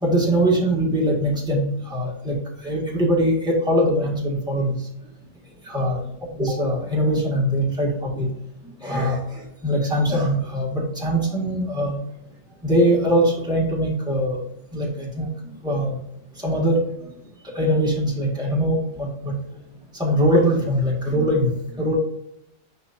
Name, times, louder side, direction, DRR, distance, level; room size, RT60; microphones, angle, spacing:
voice 1, 0.0-2.4 2.6-4.7 5.7-6.0 6.3-8.3 8.8-12.0 12.6-14.4 14.7-15.3 15.6-16.0 16.4-16.8 17.6-19.4 20.0-21.5 21.8-22.0, equal, 5° right, -4 dB, 1.8 m, -22 dB
10.5 x 3.5 x 2.7 m, 0.77 s
omnidirectional pair, 1.4 m